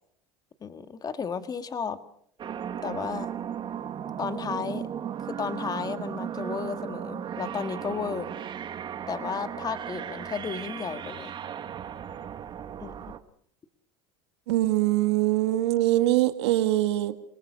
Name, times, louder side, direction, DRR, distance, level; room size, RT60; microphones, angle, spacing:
voice 1, 0.6-2.0 2.8-3.3 4.2-4.9 5.3-8.3 9.1-11.3 12.8-13.2, left 6 dB, 30° left, 10 dB, 1.8 m, -33 dB
sound 1, 2.4-13.2, right 9 dB, 35° right, 1.8 m, -36 dB
voice 2, 14.5-17.1, right 15 dB, 85° right, 9 dB, 1.7 m, -23 dB
29.0 x 18.5 x 6.4 m, 0.65 s
supercardioid pair, 105°, 14 cm